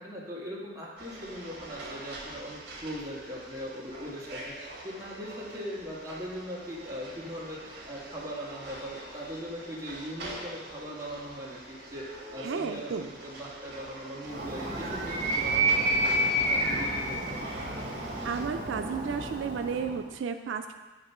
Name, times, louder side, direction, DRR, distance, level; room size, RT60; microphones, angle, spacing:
voice 1, 0.0-16.0 16.2-17.4, equal, 20° right, -6 dB, 1.6 m, -40 dB
sound 1, 1.0-18.5, right 1 dB, 60° right, 1.4 m, -44 dB
voice 2, 12.4-13.1 18.2-20.8, right 6 dB, 90° right, 7 dB, 0.4 m, -33 dB
Animal, 14.2-20.1, right 1 dB, 45° right, 1.0 m, -29 dB
8.7 x 3.0 x 5.5 m, 1.2 s
head